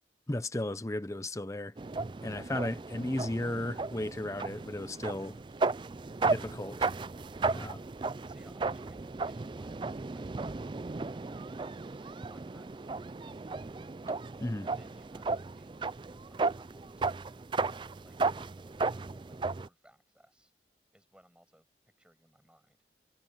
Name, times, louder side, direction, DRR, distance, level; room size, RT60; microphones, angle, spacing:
voice 1, 0.3-1.7 2.2-5.4 6.2-6.9 7.5-7.8 14.4-14.7, left 1 dB, 15° left, 0.7 m, -35 dB
sound 1, 1.8-19.7, right 3 dB, 25° right, 0.4 m, -35 dB
voice 2, 8.2-10.7 14.8-15.8 16.3-17.5 18.0-20.5 20.9-21.7 22.0-22.8, equal, 5° right, 7.6 m, -63 dB
head